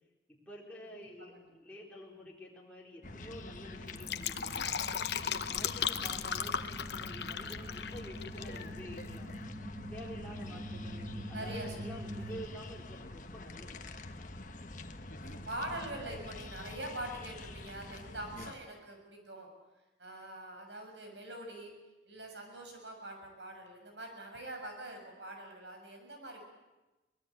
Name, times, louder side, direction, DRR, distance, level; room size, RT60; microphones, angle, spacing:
voice 1, 0.3-4.8 5.2-9.3 9.9-14.0, equal, 5° left, -4 dB, 4.2 m, -49 dB
voice 2, 1.0-1.5 11.3-11.7 15.2-19.5 20.0-21.7 22.1-26.5, right 1 dB, 75° right, 4 dB, 6.9 m, -44 dB
sound 1, 3.0-18.5, left 2 dB, 45° left, 1.3 m, -47 dB
sound 2, 3.1-12.4, equal, 35° right, 1.8 m, -46 dB
Fill (with liquid), 3.8-8.6 8.9-9.0, left 8 dB, 65° left, 0.9 m, -36 dB
24.0 x 20.0 x 8.4 m, 1.1 s
head